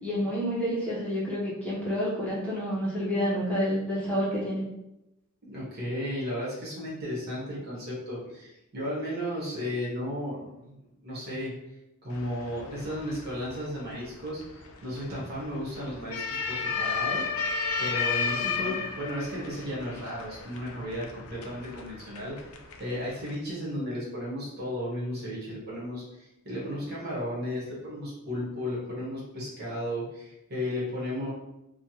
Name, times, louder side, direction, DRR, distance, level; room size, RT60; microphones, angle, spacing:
voice 1, 0.0-4.6 18.6-18.7, equal, 5° left, -8 dB, 0.8 m, -29 dB
voice 2, 5.5-11.5 12.0-17.2 17.8-22.4 22.8-31.3, equal, 50° right, -6 dB, 1.3 m, -34 dB
sound 1, 12.1-23.4, left 5 dB, 90° left, 0.4 m, -34 dB
3.3 x 2.2 x 2.9 m, 0.90 s
head